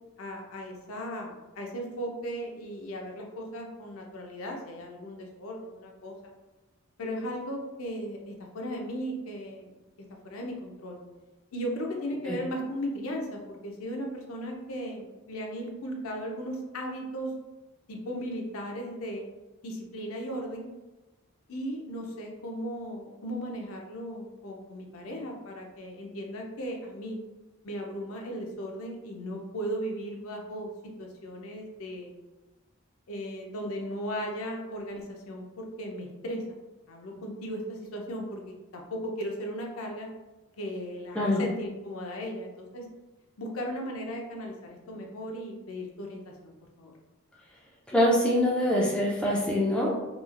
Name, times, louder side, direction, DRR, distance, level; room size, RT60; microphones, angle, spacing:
voice 1, 0.2-6.1 7.0-11.0 11.5-17.3 17.9-19.2 19.6-20.7 21.5-27.2 27.6-30.7 31.0-32.1 33.1-36.4 36.9-40.1 40.6-42.9 43.4-46.9, equal, 70° left, 1 dB, 0.5 m, -36 dB
voice 2, 47.9-50.1, left 1 dB, 5° left, -4 dB, 0.3 m, -24 dB
3.0 x 2.4 x 2.4 m, 1.1 s
head